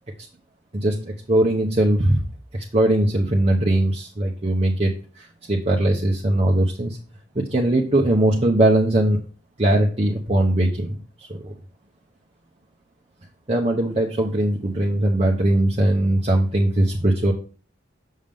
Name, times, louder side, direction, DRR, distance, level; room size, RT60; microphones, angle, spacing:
voice 1, 0.7-2.2 2.5-7.0 7.3-9.2 9.6-11.5 13.5-17.3, right 1 dB, 30° right, 0 dB, 0.9 m, -20 dB
7.1 x 6.5 x 3.6 m, 0.38 s
head